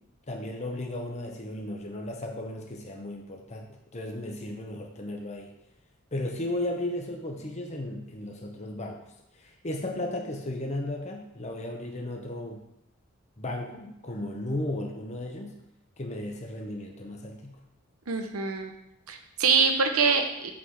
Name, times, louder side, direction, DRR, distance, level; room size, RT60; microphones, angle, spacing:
voice 1, 0.3-5.5 6.1-9.0 9.3-12.6 13.4-15.6 16.0-17.6, left 1 dB, 30° left, 1 dB, 1.0 m, -35 dB
voice 2, 18.1-18.7 19.1-20.5, right 5 dB, 85° right, 5 dB, 1.0 m, -24 dB
6.0 x 5.7 x 6.5 m, 0.83 s
head